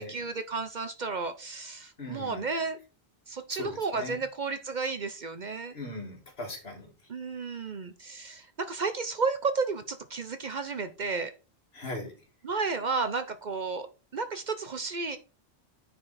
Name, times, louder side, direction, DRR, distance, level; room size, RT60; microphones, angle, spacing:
voice 1, 0.0-2.8 3.3-5.7 7.1-11.3 12.4-13.9 14.1-15.2, right 4 dB, 50° right, 10 dB, 0.8 m, -32 dB
voice 2, 2.0-2.4 3.6-4.2 5.7-6.9 11.7-12.1, left 2 dB, 70° left, 1 dB, 2.5 m, -39 dB
9.8 x 4.6 x 4.1 m, 0.32 s
omnidirectional pair, 1.1 m